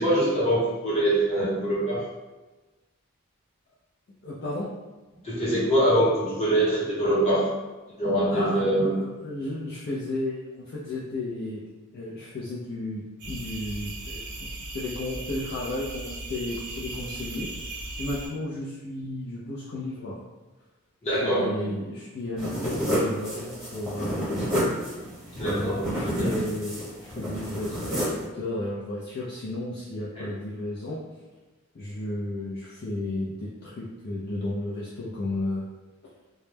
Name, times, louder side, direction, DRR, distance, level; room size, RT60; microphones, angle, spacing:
voice 1, 0.0-2.0 5.2-7.5 8.0-9.0 21.0-21.7 25.3-26.3 30.1-30.3, right 1 dB, 30° left, -8 dB, 0.9 m, -24 dB
voice 2, 4.2-4.7 8.3-11.6 11.9-17.5 18.0-20.2 21.2-25.0 25.4-31.0 31.7-35.7, left 1 dB, 45° left, -6 dB, 0.4 m, -33 dB
sound 1, 13.2-18.3, right 2 dB, 50° right, 0.5 m, -37 dB
sound 2, 22.4-28.2, equal, ahead, 0.8 m, -30 dB
2.2 x 2.1 x 3.1 m, 1.2 s
head